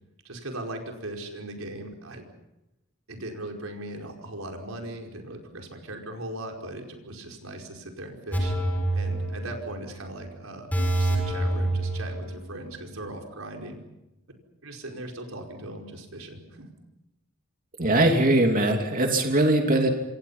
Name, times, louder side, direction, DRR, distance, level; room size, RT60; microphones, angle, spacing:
voice 1, 0.2-2.2 3.1-8.5 8.9-13.8 14.6-16.7, right 1 dB, 80° right, 2 dB, 5.0 m, -39 dB
sound 1, 8.3-9.9 10.2-10.3 10.7-12.6 12.9-13.0, right 1 dB, 10° left, 6.2 m, -27 dB
voice 2, 17.8-19.9, right 1 dB, 40° right, 3 dB, 2.9 m, -21 dB
27.5 x 26.5 x 5.7 m, 0.94 s
head